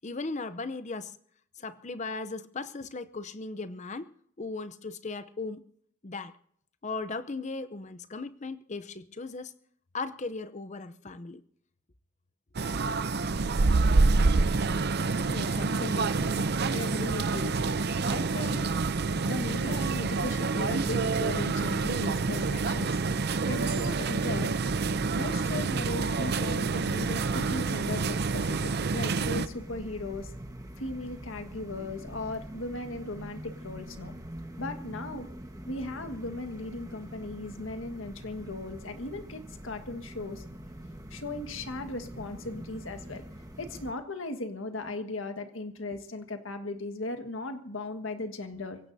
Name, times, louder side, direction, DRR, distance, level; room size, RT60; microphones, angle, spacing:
voice 1, 0.0-1.1 1.6-4.1 4.4-5.6 6.0-6.3 6.8-9.5 9.9-11.4, left 3 dB, 35° left, 0.7 m, -37 dB
sound 1, 12.5-29.5, right 3 dB, 55° right, 0.6 m, -27 dB
voice 2, 15.2-18.7 19.2-24.6 25.1-30.3 30.8-34.1 34.6-35.3 35.7-40.4 41.1-43.2 43.6-48.8, left 2 dB, 75° left, 1.7 m, -37 dB
sound 2, 24.7-43.9, equal, 15° right, 1.4 m, -44 dB
25.0 x 16.5 x 2.8 m
head